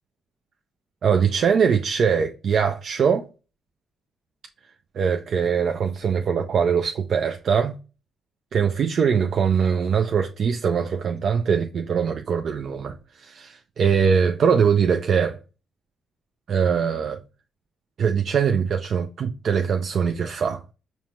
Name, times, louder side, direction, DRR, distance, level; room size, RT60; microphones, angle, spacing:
voice 1, 1.0-3.3 4.9-7.8 8.5-15.4 16.5-17.2 18.0-20.6, right 6 dB, 55° right, 0.4 m, -22 dB
5.3 x 2.1 x 3.0 m
cardioid pair, 90°, 0 cm